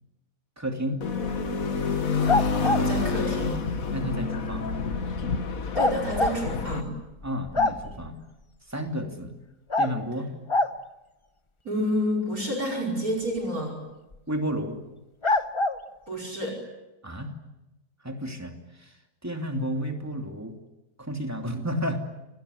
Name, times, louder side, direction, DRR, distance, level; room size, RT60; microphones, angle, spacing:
voice 1, 0.6-1.0 3.9-4.7 7.2-8.2 8.7-9.4 9.8-10.3 14.3-14.8 17.0-17.3 18.0-18.5 18.8-18.9 19.2-20.6 21.0-22.0, equal, 10° right, 4 dB, 2.7 m, -31 dB
sound 1, 1.0-6.8, left 4 dB, 60° left, 2.0 m, -28 dB
sound 2, 2.3-2.9 5.8-6.4 6.9-7.0 7.2-8.1 9.7-9.9 10.5-10.8 14.1-14.2 15.2-15.8, left 2 dB, 25° left, 0.8 m, -24 dB
voice 2, 2.6-3.6 5.7-6.9 11.6-13.8 16.1-16.6, equal, 65° right, 2 dB, 5.7 m, -29 dB
27.5 x 20.5 x 9.8 m, 1.0 s
omnidirectional pair, 1.7 m